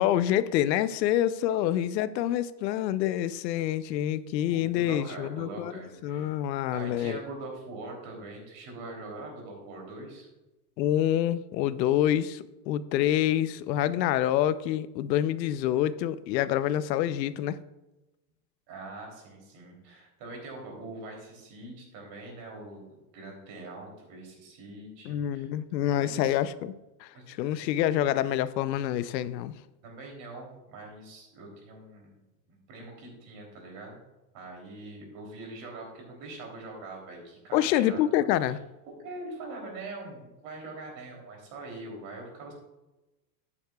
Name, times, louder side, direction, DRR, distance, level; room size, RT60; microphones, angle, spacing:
voice 1, 0.0-5.7 6.0-7.2 10.8-17.6 25.0-26.7 27.0-29.5 37.5-38.6, left 12 dB, 85° left, 15 dB, 0.7 m, -27 dB
voice 2, 4.5-6.4 6.7-10.3 18.7-25.5 26.0-26.4 27.1-27.3 29.8-32.2 32.5-34.0 34.3-38.0 38.4-38.5 38.9-42.5, right 2 dB, 40° right, 1 dB, 3.2 m, -43 dB
11.5 x 9.8 x 2.3 m, 1.0 s
supercardioid pair, 165°, 49 cm